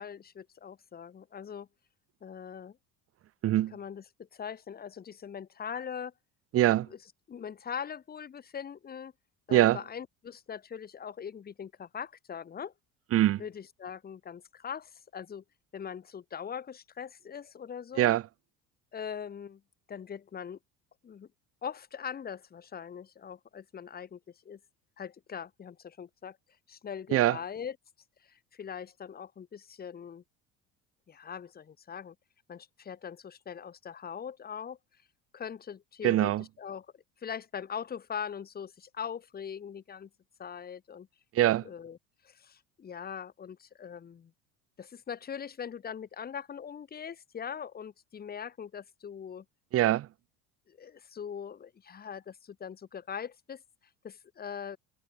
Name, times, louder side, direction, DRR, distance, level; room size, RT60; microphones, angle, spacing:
voice 1, 0.0-1.7 2.2-2.8 3.7-6.1 7.3-9.1 9.5-12.7 13.4-15.4 15.7-18.1 18.9-19.6 19.9-20.6 21.0-21.3 21.6-24.2 24.4-24.6 25.0-26.4 26.7-27.7 28.3-30.2 31.1-32.1 32.5-34.8 35.3-36.3 36.6-36.9 37.2-40.1 40.4-41.1 41.6-42.0 42.2-44.3 44.8-49.4 50.7-53.6 54.0-54.8, left 7 dB, 30° left, 4.7 m, -41 dB
voice 2, 3.4-3.8 6.5-6.9 9.5-9.8 13.1-13.4 18.0-18.2 27.1-27.4 36.0-36.4 41.3-41.7 49.7-50.1, right 14 dB, 50° right, 2.0 m, -23 dB
cardioid pair, 120°, 30 cm